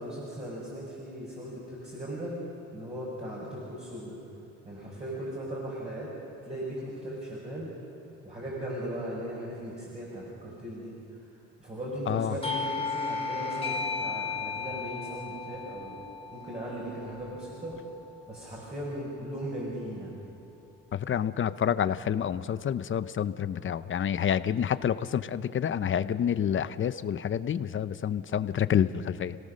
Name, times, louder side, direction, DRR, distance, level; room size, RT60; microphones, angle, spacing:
voice 1, 0.0-2.4 2.7-4.2 4.6-6.1 6.4-7.7 8.2-10.9 11.6-16.0 16.3-17.8 18.3-20.2, right 1 dB, 20° right, -5 dB, 5.1 m, -38 dB
voice 2, 12.1-12.4 20.9-29.4, left 9 dB, 40° left, 14 dB, 0.7 m, -28 dB
Doorbell, 12.4-17.7, left 4 dB, 20° left, 3.9 m, -35 dB
29.5 x 17.5 x 6.5 m, 2.9 s
cardioid pair, 135°, 31 cm